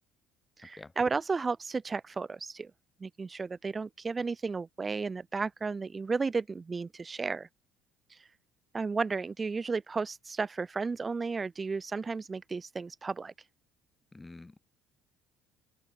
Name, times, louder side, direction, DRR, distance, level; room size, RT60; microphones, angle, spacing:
voice 1, 0.6-2.7 3.0-7.5 8.1-8.3 8.7-13.5, right 4 dB, 25° right, 0.4 m, -33 dB
voice 2, 14.1-14.6, left 2 dB, 15° left, 0.6 m, -48 dB
open air
supercardioid pair, 85°, 0 cm